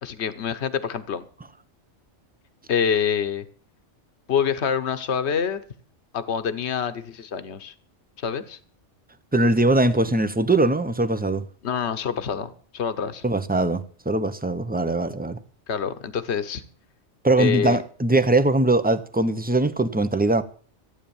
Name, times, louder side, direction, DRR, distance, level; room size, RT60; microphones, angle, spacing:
voice 1, 0.0-1.2 2.7-3.4 4.3-5.6 6.1-7.7 8.2-8.6 11.6-13.2 15.7-16.6 17.4-17.8, left 7 dB, 65° left, 1.3 m, -26 dB
voice 2, 9.3-11.4 13.2-15.4 17.2-20.4, right 2 dB, 10° right, 0.7 m, -21 dB
15.0 x 9.0 x 7.1 m
omnidirectional pair, 1.2 m